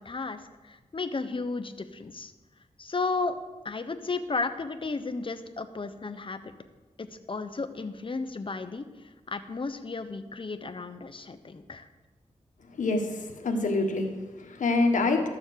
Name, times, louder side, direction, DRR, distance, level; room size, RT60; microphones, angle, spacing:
voice 1, 0.0-2.3 2.8-3.4 3.6-6.4 7.0-11.9, left 3 dB, 40° left, 9 dB, 1.0 m, -34 dB
voice 2, 12.8-15.3, left 3 dB, 85° left, 4 dB, 1.5 m, -26 dB
13.0 x 7.1 x 6.8 m, 1.2 s
cardioid pair, 70°, 13 cm